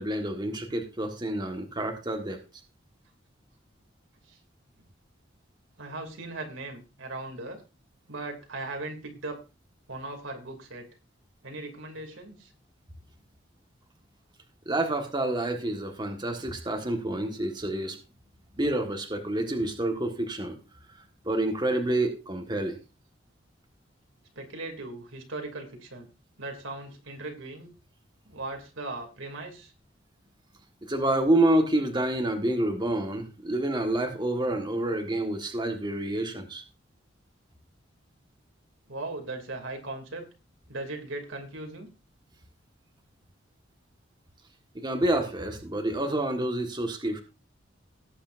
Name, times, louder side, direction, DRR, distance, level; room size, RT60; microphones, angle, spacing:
voice 1, 0.0-2.4 14.6-18.0 18.6-20.6 20.9-22.8 30.8-36.6 44.7-47.2, right 1 dB, 25° right, 3 dB, 1.6 m, -28 dB
voice 2, 5.8-7.6 8.1-9.4 9.9-10.8 11.4-12.5 24.3-26.1 26.4-27.7 28.3-29.7 38.9-40.3 40.7-41.9, right 2 dB, 80° right, 4 dB, 2.7 m, -38 dB
18.0 x 8.5 x 2.6 m, 0.29 s
head